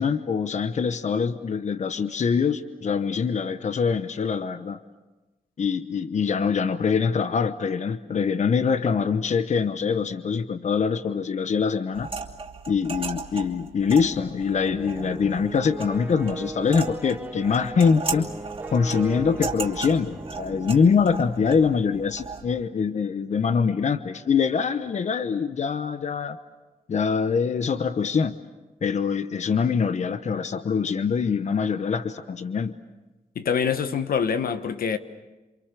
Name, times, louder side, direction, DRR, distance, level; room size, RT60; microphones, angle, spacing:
voice 1, 0.0-4.8 5.6-12.1 12.7-18.3 18.7-26.4 26.9-28.4 28.8-32.8, left 6 dB, 55° left, 1.0 m, -24 dB
sound 1, 11.9-22.4, right 4 dB, 35° right, 2.8 m, -36 dB
sound 2, 14.6-21.5, right 2 dB, 10° right, 0.8 m, -38 dB
voice 2, 33.3-35.0, left 6 dB, 90° left, 1.3 m, -25 dB
28.5 x 27.0 x 6.8 m
wide cardioid pair, 150°, 15 cm